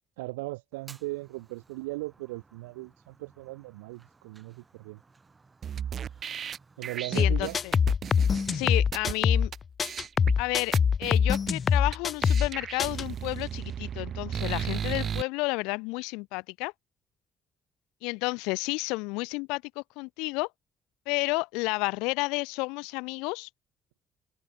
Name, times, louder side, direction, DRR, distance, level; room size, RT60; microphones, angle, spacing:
voice 1, 0.2-5.0 6.8-7.6, right 22 dB, 85° right, 0.4 m, -38 dB
Fire, 0.7-7.7, right 4 dB, 30° right, 3.3 m, -58 dB
sound 1, 5.6-9.1 9.5-9.6 9.8-10.3 10.7-11.5 11.9-12.0 12.2-15.2, right 8 dB, 55° right, 1.0 m, -35 dB
voice 2, 7.1-7.7 8.5-9.5 10.4-10.7 11.0-16.7 18.0-20.5 21.1-23.5, left 27 dB, 80° left, 0.7 m, -31 dB
sound 2, 7.2-9.5 9.8-12.5 12.8-13.0, left 6 dB, 45° left, 0.5 m, -24 dB
hypercardioid pair, 45°, 0 cm